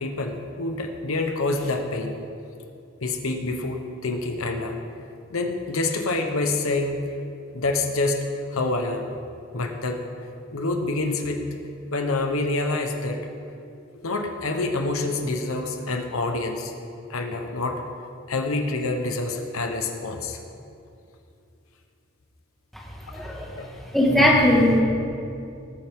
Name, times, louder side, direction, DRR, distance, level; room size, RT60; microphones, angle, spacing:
voice 1, 0.0-2.1 3.0-4.8 5.3-7.0 7.5-8.2 8.5-9.1 9.5-10.0 10.5-11.4 11.9-13.2 14.0-16.7 17.1-17.8 18.3-20.4 23.1-23.2 23.6-23.7, left 2 dB, 80° left, 4 dB, 1.0 m, -27 dB
voice 2, 23.1-23.5 23.9-24.8, left 1 dB, ahead, -3 dB, 1.8 m, -18 dB
19.5 x 9.2 x 3.7 m, 2.6 s
head